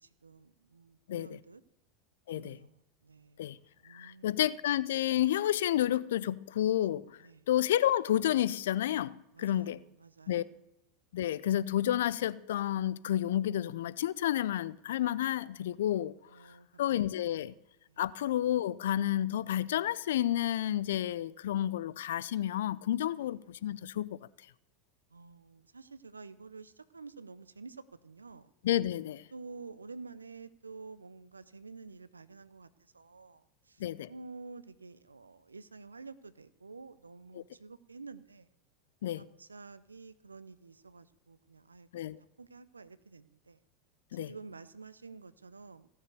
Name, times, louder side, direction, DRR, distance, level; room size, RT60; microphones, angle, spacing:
voice 1, 0.0-1.6 2.3-3.5 3.8-4.4 7.2-7.5 9.3-10.5 16.3-17.0 17.9-18.0 23.1-23.3 25.1-28.5 29.3-33.8 34.1-38.5 39.2-42.1 42.4-43.6 44.1-45.9, right 4 dB, 90° right, 0.6 m, -50 dB
voice 2, 3.9-7.2 7.5-9.8 10.3-10.4 11.1-16.1 16.8-17.5 18.0-24.2 28.6-29.2 33.8-34.1 37.3-37.4 39.0-39.3 41.9-42.2 44.1-44.3, left 12 dB, 70° left, 0.5 m, -30 dB
16.0 x 6.9 x 6.9 m
figure-of-eight pair, 85°, 0 cm